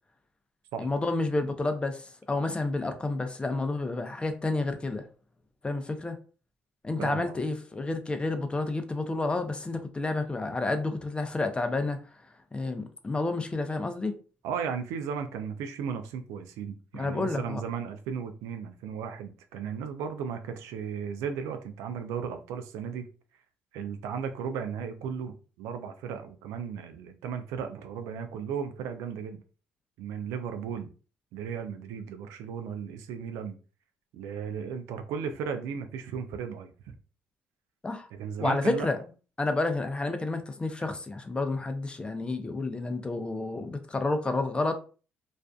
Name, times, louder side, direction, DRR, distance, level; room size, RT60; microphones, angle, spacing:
voice 1, 0.8-5.0 5.6-6.2 6.8-12.0 12.5-14.1 16.9-17.6 37.8-38.1 38.4-39.0 39.4-44.8, left 2 dB, 20° left, 0.5 m, -30 dB
voice 2, 7.0-7.4 14.4-23.1 23.7-29.4 30.0-30.9 31.3-33.6 34.1-36.9 38.1-38.9, right 7 dB, 80° right, 0.3 m, -35 dB
2.4 x 2.3 x 2.2 m
supercardioid pair, 75°, 5 cm